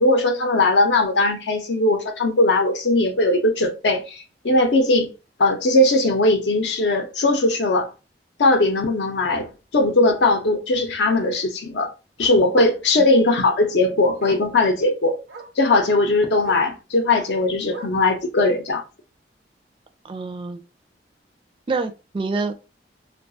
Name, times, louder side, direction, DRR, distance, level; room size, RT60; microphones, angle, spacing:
voice 1, 0.0-5.1 5.4-7.9 8.4-11.9 12.2-15.2 15.6-18.8, left 2 dB, 80° left, 0.6 m, -19 dB
Bark, 4.7-4.8 5.2-5.4 5.7-5.8 6.1-6.2 7.6-7.7 10.2-10.3 11.1-11.4 12.2-12.5 13.7-13.8 14.2-14.5 15.3-15.6 16.4-16.7 17.7-18.1 19.1-19.2, right 3 dB, 85° right, 0.7 m, -40 dB
voice 2, 20.0-20.6 21.7-22.6, right 3 dB, 30° right, 0.3 m, -26 dB
2.3 x 2.2 x 2.6 m
head